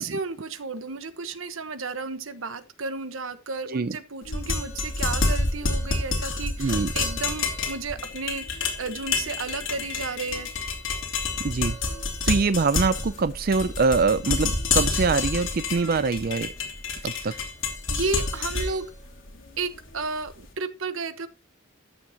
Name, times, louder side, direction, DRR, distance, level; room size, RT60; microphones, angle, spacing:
voice 1, 0.0-8.5 8.8-10.5 15.8-16.0 17.1-17.4 17.9-18.9 19.6-21.3, right 4 dB, 90° right, 1.2 m, -33 dB
sound 1, 4.2-20.3, left 3 dB, 80° left, 3.0 m, -28 dB
voice 2, 6.6-6.9 11.4-11.8 12.2-16.5 17.0-17.3, right 4 dB, 45° right, 0.4 m, -24 dB
14.0 x 7.2 x 2.9 m
head